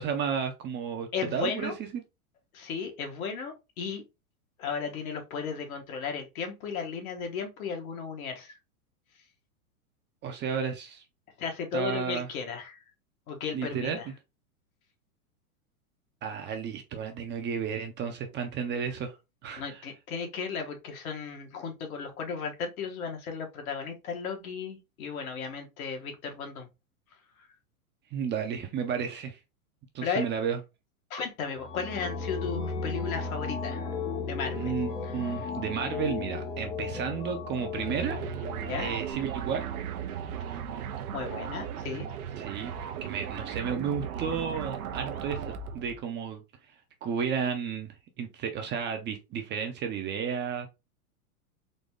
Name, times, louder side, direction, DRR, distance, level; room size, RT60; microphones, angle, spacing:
voice 1, 0.0-2.0 10.2-11.0 11.7-12.3 13.5-14.0 16.2-19.2 19.4-19.8 28.1-29.4 29.9-30.6 34.5-38.2 38.8-39.7 42.4-42.7 43.0-46.4 47.0-50.7, right 7 dB, 25° right, 0.6 m, -32 dB
voice 2, 1.1-1.7 2.5-4.0 4.6-8.5 11.4-12.8 13.3-14.1 19.6-26.7 27.4-27.5 30.0-30.3 31.1-33.9 34.2-34.7 35.0-35.3 38.6-38.9 41.1-42.1, left 6 dB, 70° left, 1.5 m, -35 dB
sound 1, 31.6-39.1, left 4 dB, 15° left, 0.4 m, -35 dB
sound 2, 37.8-46.0, right 8 dB, 75° right, 0.8 m, -36 dB
4.0 x 2.2 x 3.6 m
hypercardioid pair, 120°, 44 cm